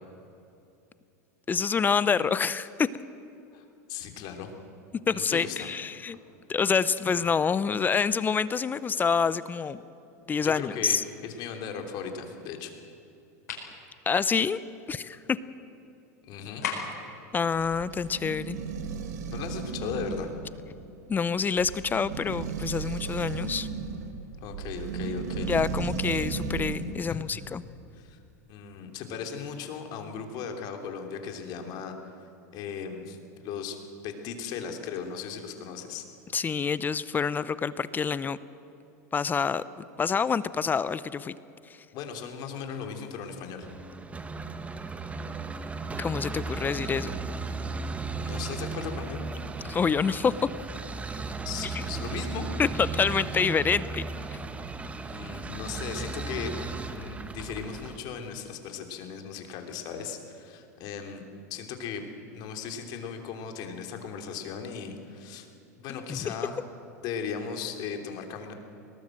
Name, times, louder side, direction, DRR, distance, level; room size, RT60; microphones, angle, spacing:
voice 1, 1.5-2.9 5.1-6.2 6.5-9.8 10.3-11.0 14.1-14.6 14.9-15.4 17.3-18.6 21.1-23.7 25.4-27.6 36.3-38.4 39.1-41.3 46.0-47.2 49.7-50.5 52.6-54.0 65.9-66.2, left 6 dB, 20° left, 16 dB, 0.6 m, -27 dB
voice 2, 3.5-4.5 5.1-5.7 7.2-7.4 10.4-12.7 16.2-16.6 19.3-20.3 24.4-25.5 27.0-27.2 28.0-28.2 28.5-31.9 32.5-36.0 41.9-43.7 48.2-49.3 51.4-52.5 55.0-56.5 56.9-61.2 61.5-65.5 65.8-66.6 67.0-68.5, left 6 dB, 55° left, 4 dB, 3.2 m, -37 dB
sound 1, 13.5-13.7 16.6-17.1, left 6 dB, 85° left, 5.0 m, -33 dB
sound 2, 17.3-27.0, right 5 dB, 85° right, 2.1 m, -35 dB
sound 3, 43.6-58.0, right 3 dB, 15° right, 1.3 m, -36 dB
21.0 x 19.0 x 7.8 m, 2.7 s
hypercardioid pair, 110°, 9 cm